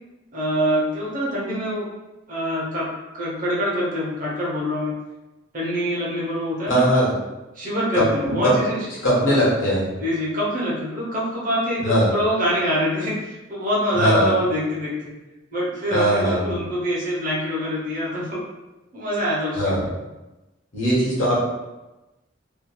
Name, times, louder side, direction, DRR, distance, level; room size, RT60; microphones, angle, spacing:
voice 1, 0.3-1.9 2.3-2.9 3.1-4.9 5.5-6.8 7.6-8.8 9.2-9.4 10.0-14.9 15.5-18.4 18.9-19.9, equal, 45° right, -5 dB, 0.8 m, -25 dB
voice 2, 6.7-7.1 7.9-8.6 9.0-9.9 11.8-12.1 13.9-14.3 15.9-16.5 19.5-19.9 20.7-21.4, equal, 80° left, -7 dB, 1.2 m, -20 dB
2.9 x 2.6 x 2.2 m, 1.0 s
head